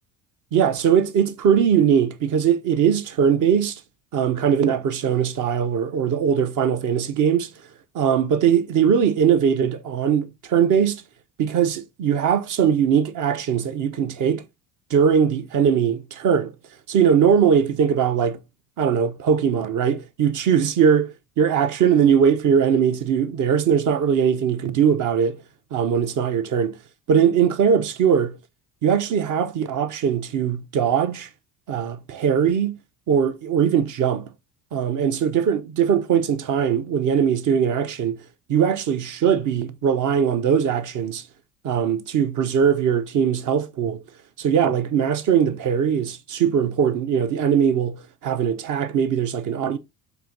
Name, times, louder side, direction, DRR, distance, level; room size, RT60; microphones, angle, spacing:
voice 1, 0.5-3.8 4.1-7.5 7.9-11.0 11.4-14.4 14.9-16.5 16.9-18.4 18.8-25.4 25.7-26.8 27.1-28.4 28.8-31.3 31.7-32.8 33.1-34.3 34.7-38.2 38.5-41.2 41.6-44.0 44.4-49.8, right 7 dB, 40° right, 0.6 m, -20 dB
4.4 x 2.6 x 3.8 m
hypercardioid pair, 60°, 46 cm